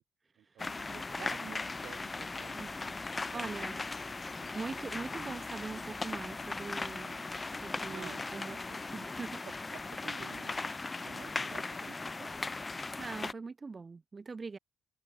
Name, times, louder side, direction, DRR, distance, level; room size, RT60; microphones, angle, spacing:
voice 1, 0.4-2.6 3.3-3.4 4.3-4.9 7.9-8.8 9.7-10.6 11.0-12.4, right 12 dB, 75° right, 0.8 m, -51 dB
sound 1, 0.6-13.3, left 3 dB, 25° left, 0.5 m, -38 dB
Bird vocalization bird call bird song, 1.7-11.3, left 7 dB, 50° left, 3.6 m, -70 dB
voice 2, 2.5-3.0 3.3-3.8 4.5-8.6 8.9-9.4 13.0-14.6, right 4 dB, 30° right, 0.5 m, -42 dB
open air
cardioid pair, 90°, 0 cm